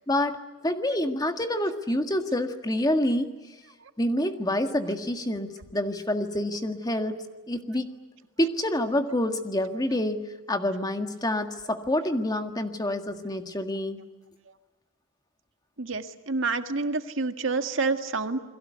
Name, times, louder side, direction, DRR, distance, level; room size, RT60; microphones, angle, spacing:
voice 1, 0.1-3.3 4.0-7.9 8.4-14.0, left 1 dB, 20° left, 6 dB, 1.8 m, -27 dB
voice 2, 15.8-18.4, right 3 dB, 70° right, 7 dB, 1.8 m, -28 dB
29.0 x 22.0 x 8.2 m, 1.2 s
head